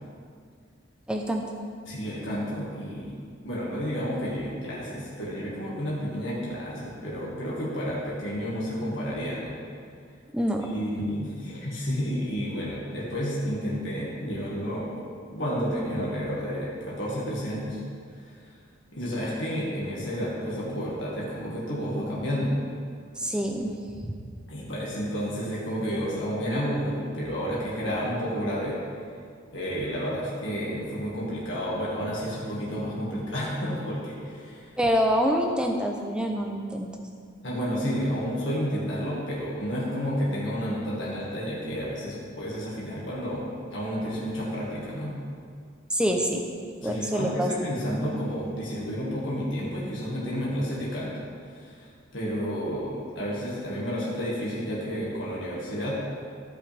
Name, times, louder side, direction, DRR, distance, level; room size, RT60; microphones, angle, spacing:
voice 1, 1.1-1.4 10.3-10.7 23.2-23.8 34.8-36.9 45.9-46.4 46.8-47.5, equal, 5° right, 2 dB, 0.6 m, -26 dB
voice 2, 1.9-3.2 3.4-9.6 10.7-14.9 15.3-17.8 18.2-18.3 18.9-22.5 24.5-28.8 29.5-34.7 37.4-45.1 46.8-51.1 51.6-51.9 52.1-55.9, equal, 65° left, -6 dB, 1.9 m, -31 dB
14.5 x 5.4 x 3.5 m, 2.2 s
head